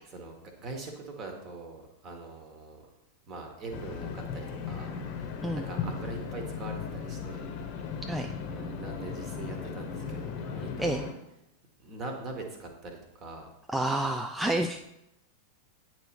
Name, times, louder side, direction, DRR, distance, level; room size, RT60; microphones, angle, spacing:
voice 1, 0.1-2.8 3.3-7.4 8.5-11.0 11.8-13.5, right 3 dB, 30° right, 3 dB, 1.3 m, -42 dB
sound 1, 3.7-11.1, left 6 dB, 40° left, 0.8 m, -37 dB
voice 2, 13.7-14.9, right 1 dB, 5° right, 4 dB, 0.3 m, -29 dB
8.8 x 3.0 x 4.6 m, 0.86 s
figure-of-eight pair, 90°, 0 cm